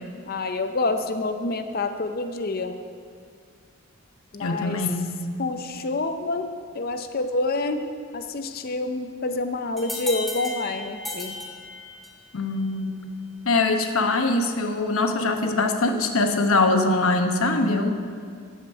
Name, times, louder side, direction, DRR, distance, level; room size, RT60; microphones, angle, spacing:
voice 1, 0.3-2.8 4.3-4.8 5.4-6.5 6.7-7.8 8.1-11.3, left 2 dB, 45° left, 7 dB, 0.6 m, -27 dB
voice 2, 4.4-5.1 12.3-13.0 13.4-17.9, left 2 dB, 75° left, 5 dB, 1.0 m, -22 dB
sound 1, 9.8-12.3, left 2 dB, ahead, 1.5 m, -35 dB
13.5 x 5.2 x 8.7 m, 2.2 s
head